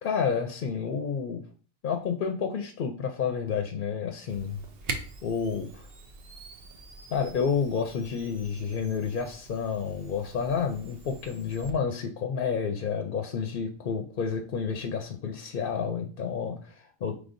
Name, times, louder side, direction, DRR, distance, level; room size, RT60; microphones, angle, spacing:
voice 1, 0.0-1.4 1.8-4.6 5.2-5.8 7.1-17.1, left 6 dB, 60° left, 4 dB, 0.7 m, -30 dB
Camera, 4.3-11.7, right 3 dB, 70° right, 0.9 m, -43 dB
5.2 x 3.3 x 2.6 m, 0.42 s
omnidirectional pair, 1.1 m